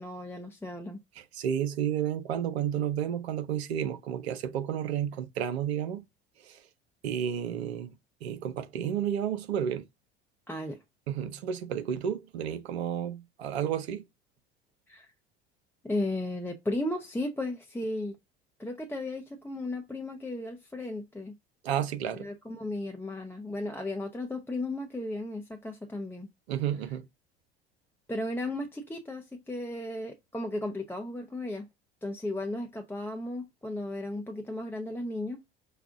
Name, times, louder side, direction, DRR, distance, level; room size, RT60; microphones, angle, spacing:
voice 1, 0.0-1.0 10.5-10.8 14.9-15.1 15.8-18.2 18.6-21.3 22.2-26.3 28.1-31.7 32.0-35.4, left 1 dB, 5° left, 0.8 m, -35 dB
voice 2, 1.2-6.0 6.4-6.6 7.0-7.9 8.2-9.9 11.1-14.0 21.6-22.3 26.5-27.0, right 9 dB, 75° right, 0.7 m, -31 dB
5.2 x 2.3 x 2.5 m
hypercardioid pair, 65°, 32 cm